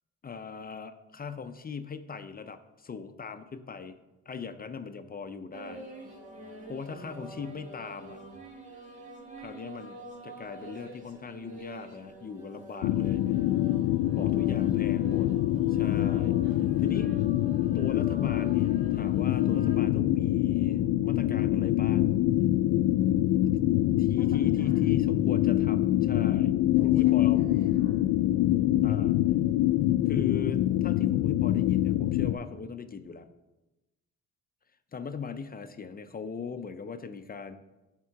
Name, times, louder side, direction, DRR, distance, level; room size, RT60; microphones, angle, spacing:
voice 1, 0.2-4.0 4.3-5.8 6.7-8.2 9.4-10.0 10.2-13.4 14.2-15.3 15.7-16.4 16.8-17.1 17.7-22.1 24.0-27.4 28.8-29.2 30.1-33.3 34.9-37.6, left 5 dB, 30° left, 9 dB, 0.6 m, -39 dB
sound 1, 5.5-19.8, right 1 dB, 25° right, 1.8 m, -45 dB
voice 2, 6.9-7.4 13.8-14.9 16.4-17.3 24.1-25.1 26.7-28.0, equal, 75° right, -1 dB, 2.2 m, -48 dB
sound 2, 12.8-32.3, left 14 dB, 80° left, 0.5 m, -25 dB
10.5 x 3.7 x 5.7 m, 1.0 s
cardioid pair, 90°, 30 cm